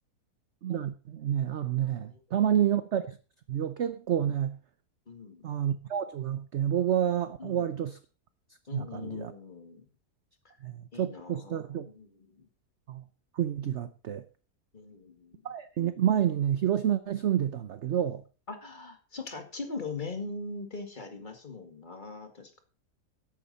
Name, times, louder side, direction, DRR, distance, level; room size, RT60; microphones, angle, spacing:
voice 1, 0.6-3.2 3.5-4.6 5.4-8.0 8.7-9.3 10.6-11.9 12.9-13.0 13.3-14.2 15.4-18.2, right 10 dB, 55° right, 0.8 m, -29 dB
voice 2, 5.1-5.5 7.4-7.7 8.7-9.9 10.4-10.6 10.9-12.5 14.7-15.4 18.5-22.6, left 3 dB, 30° left, 2.1 m, -41 dB
13.5 x 11.0 x 4.1 m
omnidirectional pair, 1.8 m